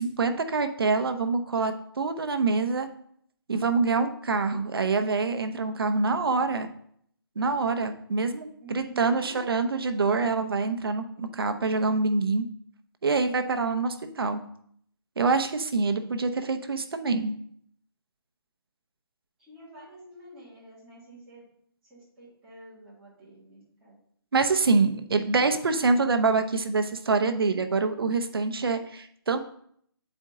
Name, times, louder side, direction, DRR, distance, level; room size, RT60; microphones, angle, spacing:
voice 1, 0.0-2.9 3.5-6.7 7.4-12.5 13.0-14.4 15.2-17.3 24.3-29.4, right 4 dB, 70° right, 8 dB, 0.7 m, -25 dB
voice 2, 8.6-9.4 19.4-21.4 21.9-24.0, right 1 dB, 5° right, -12 dB, 1.7 m, -48 dB
7.4 x 4.4 x 3.7 m, 0.66 s
hypercardioid pair, 175°, 13 cm